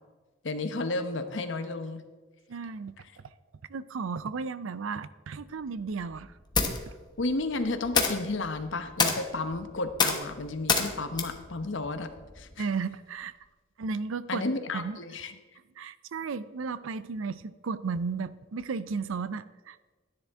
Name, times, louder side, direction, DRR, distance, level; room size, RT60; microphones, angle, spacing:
voice 1, 0.4-2.0 7.2-12.1 12.4-12.7 14.3-15.4, left 2 dB, 65° left, 9 dB, 0.9 m, -32 dB
voice 2, 2.5-2.9 3.7-6.3 6.9-7.0 12.6-13.3 13.8-14.4 14.7-15.0 15.8-19.8, right 5 dB, 80° right, 16 dB, 0.5 m, -34 dB
sound 1, 5.4-12.6, left 5 dB, 20° left, 1.0 m, -31 dB
12.5 x 10.5 x 3.6 m, 1.3 s
head